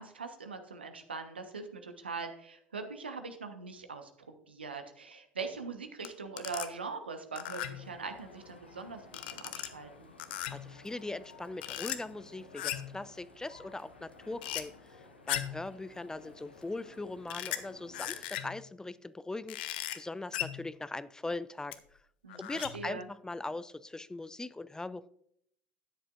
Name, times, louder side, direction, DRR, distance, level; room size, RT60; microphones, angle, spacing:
voice 1, 0.0-4.1 4.5-9.0 9.3-10.1 22.2-23.1, right 4 dB, 85° right, 6 dB, 1.2 m, -42 dB
sound 1, 6.0-6.1 6.4-6.7 7.4-7.9 9.1-9.7 10.2-10.7 11.6-12.0 12.5-13.0 14.4-14.6 15.3-15.6 17.3-17.6 17.9-18.6 19.5-20.0 20.3-20.6 21.7-21.8 22.3-22.9, left 13 dB, 65° left, 0.9 m, -37 dB
sound 2, 7.7-18.2, left 3 dB, 85° left, 1.3 m, -55 dB
voice 2, 10.5-22.0 22.3-25.1, left 2 dB, 10° left, 16 dB, 0.5 m, -41 dB
13.0 x 10.0 x 2.5 m, 0.70 s
figure-of-eight pair, 65°, 6 cm